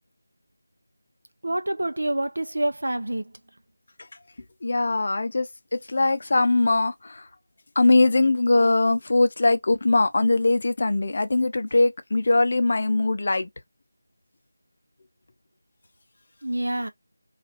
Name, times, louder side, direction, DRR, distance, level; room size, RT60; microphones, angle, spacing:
voice 1, 1.4-3.3 16.4-16.9, right 1 dB, 75° right, 0.5 m, -27 dB
voice 2, 4.6-7.3 7.8-13.5, left 2 dB, 50° left, 0.5 m, -21 dB
2.9 x 2.4 x 2.8 m
figure-of-eight pair, 170°, 0 cm